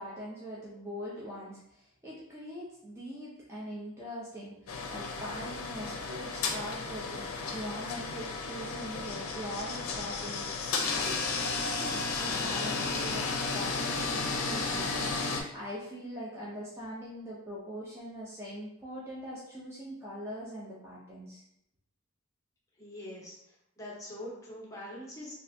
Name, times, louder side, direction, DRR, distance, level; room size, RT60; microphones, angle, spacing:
voice 1, 0.0-21.4, equal, 10° right, -7 dB, 0.5 m, -42 dB
sound 1, 4.7-15.4, left 4 dB, 85° left, 0.5 m, -33 dB
voice 2, 22.8-23.4 23.8-25.4, left 1 dB, 15° left, -4 dB, 0.8 m, -43 dB
3.3 x 2.4 x 2.5 m, 0.79 s
head